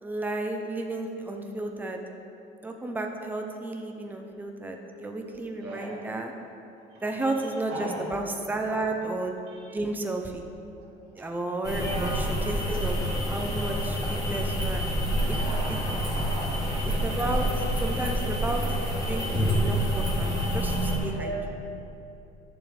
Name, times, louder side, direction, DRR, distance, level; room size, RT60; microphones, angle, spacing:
voice 1, 0.0-2.0 2.6-6.3 7.0-9.4 9.7-10.5 11.2-13.0 13.3-14.8 15.3-15.4 15.7-15.8 16.8-17.5 17.8-18.6 19.1-21.3, right 2 dB, 10° right, 2 dB, 0.7 m, -32 dB
voice 2, 5.6-6.1 6.9-7.0 7.7-8.0 9.5-9.8 11.2-11.3 11.8-12.6 15.3-17.4 21.1-21.4, right 1 dB, 90° right, -4 dB, 2.0 m, -38 dB
sound 1, 11.6-21.0, equal, 20° left, 1.9 m, -27 dB
11.0 x 7.2 x 3.5 m, 2.7 s
cardioid pair, 110°, 17 cm